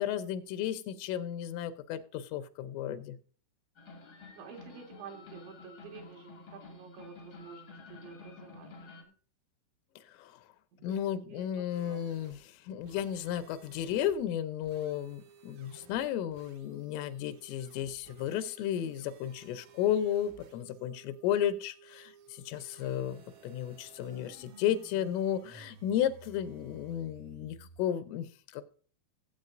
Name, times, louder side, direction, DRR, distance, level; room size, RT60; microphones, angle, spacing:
voice 1, 0.0-3.2 10.2-10.4 10.8-28.6, left 10 dB, 85° left, 13 dB, 3.3 m, -33 dB
sound 1, 3.8-9.0, left 3 dB, 65° left, 0.9 m, -51 dB
voice 2, 4.4-9.1 10.7-11.0 11.3-12.1, right 6 dB, 70° right, 3 dB, 3.7 m, -50 dB
sound 2, 11.7-27.8, right 6 dB, 90° right, 4.6 m, -56 dB
18.0 x 8.2 x 2.5 m, 0.41 s
omnidirectional pair, 5.7 m